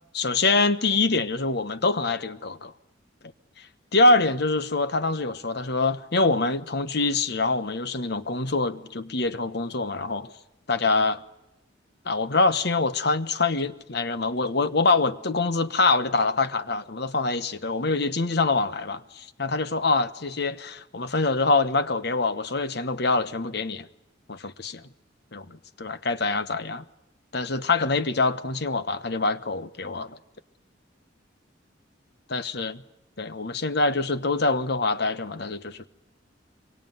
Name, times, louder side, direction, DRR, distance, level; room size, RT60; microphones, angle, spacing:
voice 1, 0.1-2.7 3.6-3.7 3.9-10.3 10.7-11.2 12.0-23.9 24.3-24.8 25.3-26.8 27.3-30.2 32.3-32.8 33.2-35.9, left 3 dB, 55° left, 1.2 m, -25 dB
25.5 x 23.5 x 9.4 m
head